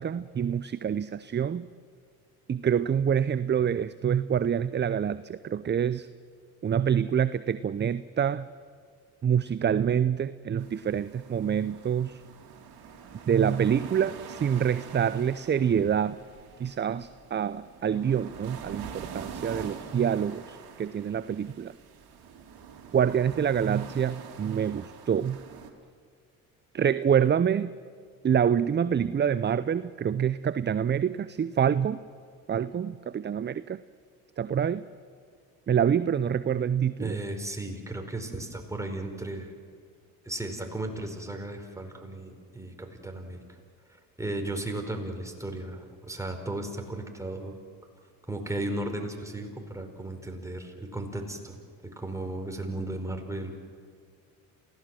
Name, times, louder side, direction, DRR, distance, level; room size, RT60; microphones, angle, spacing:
voice 1, 0.0-1.7 2.5-6.1 6.6-8.5 9.2-12.2 13.3-16.2 16.6-21.7 22.9-25.4 26.7-27.7 28.2-32.0 32.5-33.8 34.4-34.8 35.7-37.2, right 8 dB, 25° right, 15 dB, 0.6 m, -26 dB
sound 1, 10.6-25.7, right 7 dB, 55° right, 3.3 m, -45 dB
voice 2, 37.0-39.5 40.2-43.4 44.2-47.5 48.3-51.5 52.0-53.5, right 2 dB, 5° right, 3 dB, 4.8 m, -35 dB
28.0 x 17.0 x 7.7 m, 2.1 s
hypercardioid pair, 65°, 42 cm